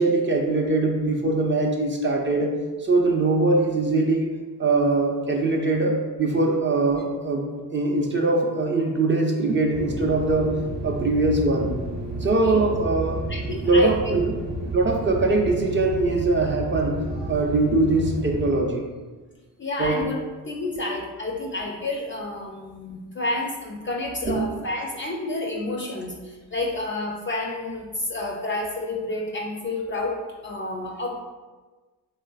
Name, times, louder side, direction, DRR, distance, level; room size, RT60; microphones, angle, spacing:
voice 1, 0.0-2.5 2.8-4.3 4.6-10.5 10.8-11.7 12.2-13.2 13.6-14.3 14.7-17.0 17.3-18.9 19.8-20.0 24.3-24.5, right 2 dB, 30° right, 1 dB, 0.5 m, -22 dB
sound 1, 9.7-18.5, right 1 dB, 85° right, 0.7 m, -31 dB
voice 2, 13.3-13.9 19.6-20.2 20.5-31.2, left 2 dB, 30° left, 0 dB, 0.4 m, -30 dB
3.2 x 2.4 x 2.3 m, 1.3 s
supercardioid pair, 55°, 41 cm